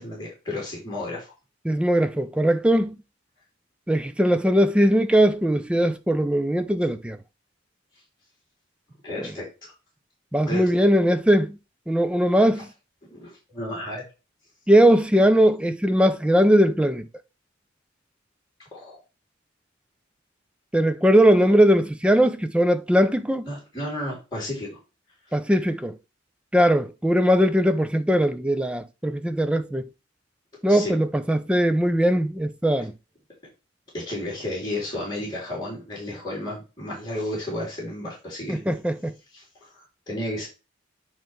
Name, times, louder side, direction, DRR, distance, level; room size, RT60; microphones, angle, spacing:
voice 1, 0.0-1.3 9.0-9.7 10.5-10.7 13.1-14.0 18.7-19.0 23.5-24.7 30.7-30.9 33.9-38.6 39.3-40.5, left 1 dB, 20° left, 3.1 m, -32 dB
voice 2, 1.6-3.0 3.9-7.2 9.2-9.3 10.3-11.6 11.9-12.7 14.7-17.1 20.7-23.5 25.3-26.0 26.5-29.9 30.6-32.9 38.5-39.1, equal, 5° right, 0.4 m, -20 dB
9.0 x 3.1 x 4.6 m
head